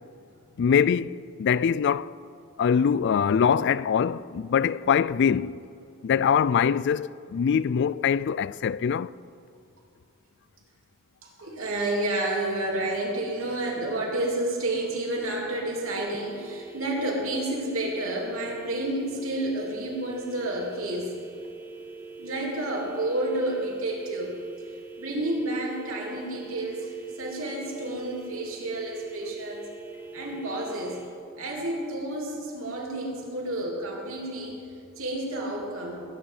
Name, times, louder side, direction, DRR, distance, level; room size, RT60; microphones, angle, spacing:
voice 1, 0.6-2.1 2.6-5.6 6.0-9.1, left 7 dB, 55° left, 0.3 m, -23 dB
voice 2, 11.2-21.1 22.2-24.4 25.0-29.7 30.1-31.0 31.4-36.0, right 1 dB, 75° right, 3.4 m, -30 dB
sound 1, 16.0-31.1, right 4 dB, 10° right, 1.4 m, -43 dB
21.0 x 10.0 x 5.5 m
head